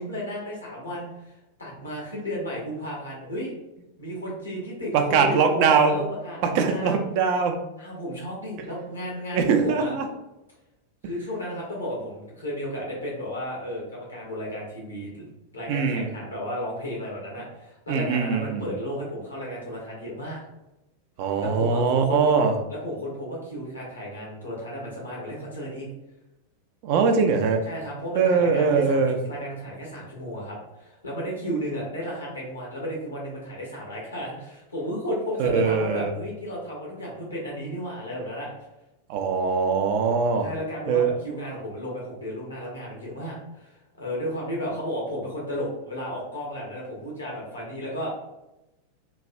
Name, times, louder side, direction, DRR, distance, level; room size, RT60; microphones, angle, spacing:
voice 1, 0.0-3.5 4.0-7.0 7.8-9.9 11.0-15.2 15.5-20.4 21.4-22.4 22.7-25.9 27.6-38.5 40.4-48.1, equal, 75° left, -3 dB, 1.0 m, -33 dB
voice 2, 4.9-6.0 6.4-7.6 9.3-10.0 15.7-16.1 17.9-18.7 21.2-22.5 26.8-27.6 28.1-29.2 35.4-36.1 39.1-40.5 40.9-41.1, right 5 dB, 45° right, 5 dB, 0.4 m, -22 dB
3.1 x 2.2 x 2.6 m, 0.92 s
figure-of-eight pair, 90°, 0 cm